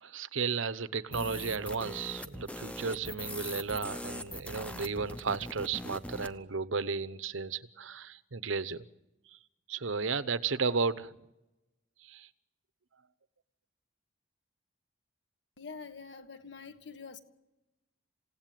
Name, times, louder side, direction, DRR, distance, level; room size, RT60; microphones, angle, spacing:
voice 1, 0.0-8.8 9.3-9.4 9.7-11.1 12.0-12.3, right 5 dB, 75° right, 0.9 m, -34 dB
sound 1, 1.1-6.3, left 1 dB, 5° left, 0.8 m, -41 dB
voice 2, 15.6-17.2, left 5 dB, 55° left, 1.6 m, -46 dB
28.0 x 17.5 x 9.2 m
head